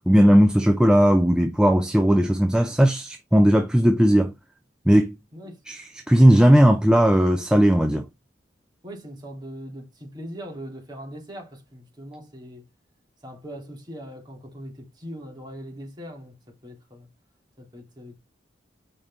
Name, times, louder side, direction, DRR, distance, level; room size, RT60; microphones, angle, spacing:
voice 1, 0.1-4.3 4.9-5.1 5.7-5.8 6.1-8.0, equal, 5° right, 0.6 m, -17 dB
voice 2, 8.8-12.7 13.2-17.1 17.6-18.1, equal, 25° right, 2.9 m, -40 dB
5.8 x 5.2 x 3.6 m
head